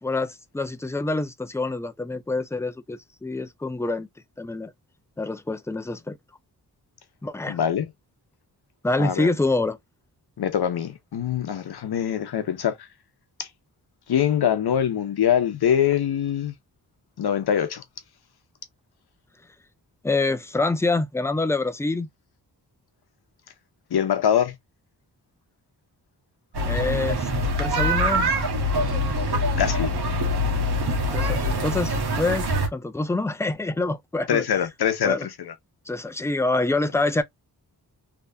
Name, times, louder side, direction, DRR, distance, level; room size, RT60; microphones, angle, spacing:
voice 1, 0.0-4.1 4.4-4.7 5.2-6.2 7.2-7.6 8.8-9.8 20.0-22.1 26.6-27.3 27.6-28.3 31.1-34.4 35.0-35.3 35.9-37.2, left 2 dB, 5° left, 0.4 m, -26 dB
voice 2, 7.5-7.9 9.0-9.3 10.4-12.7 13.4-13.5 14.1-16.5 17.2-17.8 23.9-24.5 29.6-29.9 34.3-35.5, left 9 dB, 70° left, 0.8 m, -23 dB
sound 1, 26.5-32.7, equal, 80° right, 1.3 m, -24 dB
3.5 x 2.9 x 2.5 m
wide cardioid pair, 120°, 39 cm